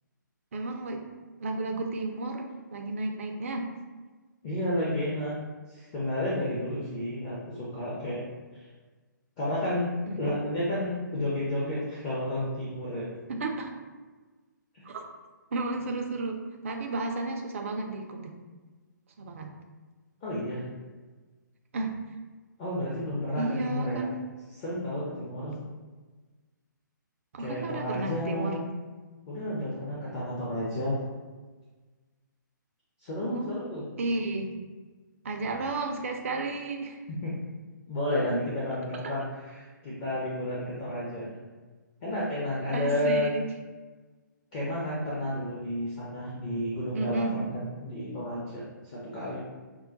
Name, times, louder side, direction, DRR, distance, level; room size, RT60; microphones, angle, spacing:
voice 1, 0.5-1.0 1.4-3.7 10.1-10.4 13.3-13.7 14.8-15.1 15.5-18.3 19.2-19.5 21.7-21.9 23.3-24.2 27.3-28.6 33.3-33.6 34.0-34.5 35.2-37.0 39.0-39.1 42.7-43.5 46.9-47.4, right 2 dB, 40° right, 3 dB, 0.4 m, -32 dB
voice 2, 4.4-5.3 5.7-8.2 9.4-9.9 10.2-13.1 14.7-14.8 20.2-20.6 22.6-24.1 24.6-25.5 27.4-28.6 29.3-31.0 33.0-33.8 37.2-37.3 37.9-41.3 42.0-43.3 44.5-49.4, left 1 dB, 25° left, -7 dB, 0.5 m, -31 dB
2.2 x 2.1 x 3.7 m, 1.3 s
figure-of-eight pair, 135°, 11 cm